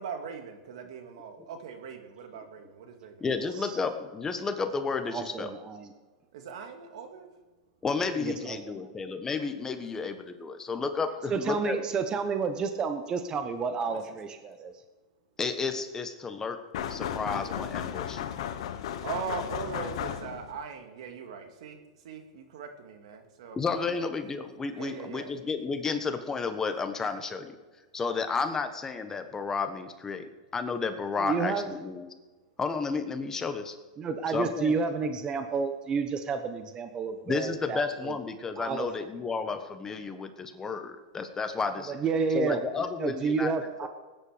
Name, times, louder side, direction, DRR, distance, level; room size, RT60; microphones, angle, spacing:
voice 1, 0.0-3.8 6.3-7.3 13.8-14.0 19.0-23.6 24.7-25.3, right 6 dB, 70° right, 5 dB, 2.2 m, -40 dB
voice 2, 3.2-5.5 7.8-11.8 15.4-16.6 16.9-18.2 23.6-27.6 27.9-32.1 32.6-33.7 34.3-34.7 37.3-42.0 42.3-43.5 43.8-43.9, left 4 dB, 15° left, 8 dB, 1.3 m, -32 dB
voice 3, 5.1-5.9 8.1-8.9 11.3-14.7 31.2-31.7 34.0-38.2 38.6-38.9 41.9-42.6 43.0-43.9, right 5 dB, 25° right, 7 dB, 1.1 m, -30 dB
sound 1, 16.7-20.6, left 9 dB, 70° left, 1.3 m, -34 dB
19.0 x 10.0 x 5.1 m, 1.2 s
hypercardioid pair, 130°, 3 cm